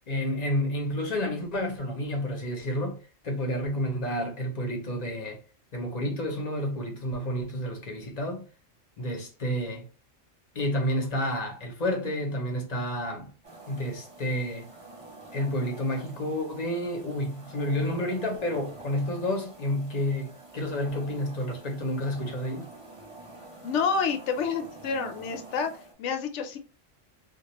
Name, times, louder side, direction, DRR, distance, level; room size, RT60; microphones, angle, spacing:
voice 1, 0.1-3.0 3.2-5.4 5.7-8.5 9.0-9.9 10.5-13.3 13.7-14.7 15.3-22.7, left 1 dB, 45° left, 0.6 m, -30 dB
sound 1, 13.4-25.9, right 2 dB, 30° right, 0.9 m, -47 dB
voice 2, 23.6-26.6, left 5 dB, 70° left, 0.8 m, -29 dB
2.3 x 2.3 x 2.8 m
omnidirectional pair, 1.3 m